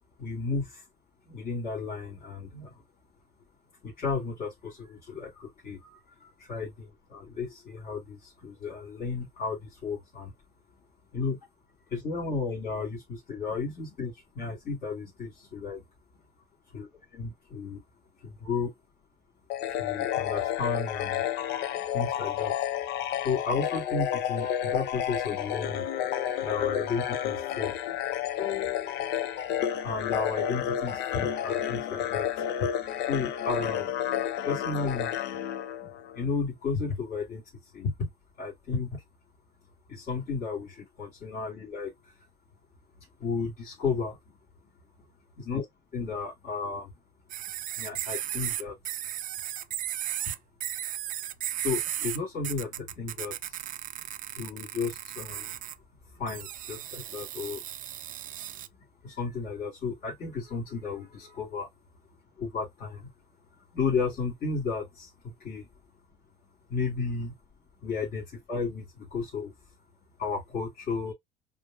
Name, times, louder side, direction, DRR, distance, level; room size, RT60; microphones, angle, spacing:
voice 1, 0.2-0.8 1.3-2.7 3.8-10.3 11.1-11.4 11.9-15.8 16.7-17.8 18.2-18.7 19.7-21.3 21.9-22.5 23.2-25.9 26.4-28.0 28.4-29.0 29.8-32.7 33.1-33.9 34.4-35.5 35.8-35.9 36.1-37.4 37.7-38.1 38.4-39.0 39.9-42.1 43.2-44.2 45.4-45.6 45.9-46.9 47.8-49.3 51.6-53.6 54.4-55.6 56.1-57.6 59.0-61.7 62.4-63.1 63.7-65.7 66.7-67.3 67.8-69.5 70.2-71.1, left 4 dB, 60° left, 2.4 m, -33 dB
sound 1, 19.5-36.3, left 10 dB, 80° left, 0.6 m, -31 dB
sound 2, 47.3-52.2 52.4-55.7 56.3-58.7, right 12 dB, 50° right, 0.4 m, -35 dB
5.0 x 2.1 x 2.4 m
cardioid pair, 110°, 17 cm